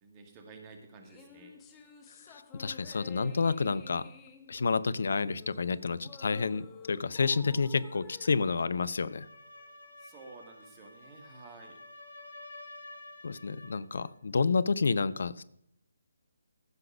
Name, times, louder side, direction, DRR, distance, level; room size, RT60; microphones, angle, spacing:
voice 1, 0.0-1.5 10.0-11.8, right 4 dB, 20° right, 4 dB, 1.9 m, -51 dB
sound 1, 1.0-9.6, left 7 dB, 15° left, 1.2 m, -53 dB
voice 2, 2.3-4.1 4.5-9.3 13.2-15.4, left 4 dB, 55° left, 17 dB, 0.6 m, -29 dB
sound 2, 8.9-13.8, left 2 dB, 70° left, 3.9 m, -50 dB
15.0 x 5.9 x 6.2 m, 0.71 s
figure-of-eight pair, 145°, 0 cm